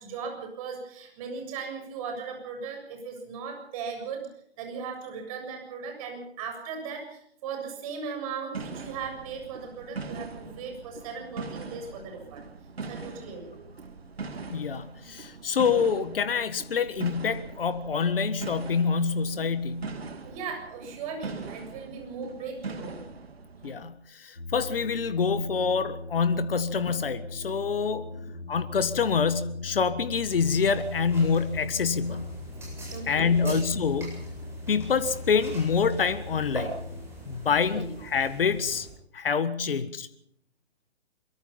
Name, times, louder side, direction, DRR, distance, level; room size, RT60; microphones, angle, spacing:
voice 1, 0.0-4.3 4.6-12.5 12.9-13.6 20.2-23.0 32.9-33.6 37.5-37.9, right 5 dB, 30° right, 4 dB, 7.2 m, -38 dB
sound 1, 8.5-23.9, right 4 dB, 65° right, 2.5 m, -41 dB
voice 2, 14.5-20.0 23.6-28.1 28.5-32.3 33.1-34.2 34.7-36.7 37.3-38.9 39.1-40.1, left 5 dB, 55° left, 13 dB, 1.6 m, -26 dB
sound 2, 24.4-37.1, left 4 dB, 75° left, 4.0 m, -40 dB
sound 3, 30.2-38.9, right 2 dB, 5° right, 7.8 m, -43 dB
23.0 x 23.0 x 5.6 m, 0.68 s
figure-of-eight pair, 130°, 33 cm